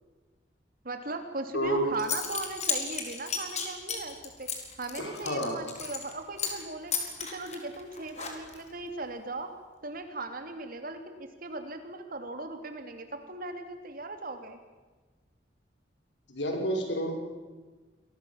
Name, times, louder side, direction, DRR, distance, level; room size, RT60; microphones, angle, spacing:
voice 1, 0.8-4.5 4.8-6.9 7.3-9.5 9.8-14.6, right 2 dB, 55° right, 7 dB, 3.2 m, -38 dB
voice 2, 1.5-1.9 5.0-5.5 16.3-17.1, equal, 90° left, 4 dB, 5.9 m, -29 dB
Zipper (clothing) / Coin (dropping), 1.6-1.7 2.0-6.1 6.4-6.6 6.9-8.7, left 6 dB, 40° left, 4.5 m, -34 dB
27.0 x 20.5 x 7.4 m, 1.3 s
head